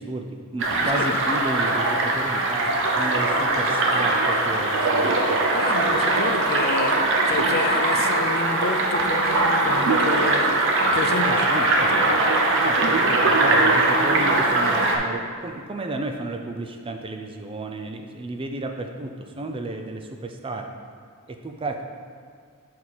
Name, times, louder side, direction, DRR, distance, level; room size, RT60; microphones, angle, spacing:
voice 1, 0.0-5.4 11.1-12.1 12.5-20.7 21.3-21.8, right 2 dB, 25° right, 0.4 m, -32 dB
sound 1, 0.6-15.0, right 2 dB, 60° right, 0.7 m, -21 dB
voice 2, 5.5-12.4, left 4 dB, 45° left, 0.4 m, -30 dB
6.4 x 4.3 x 4.1 m
head